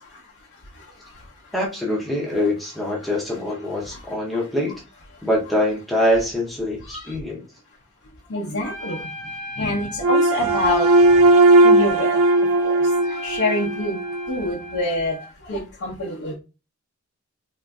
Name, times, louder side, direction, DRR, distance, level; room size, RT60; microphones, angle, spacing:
voice 1, 1.5-4.7 5.2-7.4, left 1 dB, ahead, -3 dB, 0.7 m, -24 dB
voice 2, 3.6-4.0 4.3-4.4 6.8-7.1 8.3-9.1 9.6-10.9 11.6-12.2 12.6-12.8 13.1-14.0 14.3-15.2 15.4-16.3, left 1 dB, 85° left, -5 dB, 0.7 m, -26 dB
Trumpet, 8.6-15.3, left 1 dB, 85° right, 1.6 m, -37 dB
sound 1, 10.0-14.3, right 2 dB, 60° right, 0.3 m, -17 dB
3.8 x 2.5 x 2.2 m, 0.30 s
head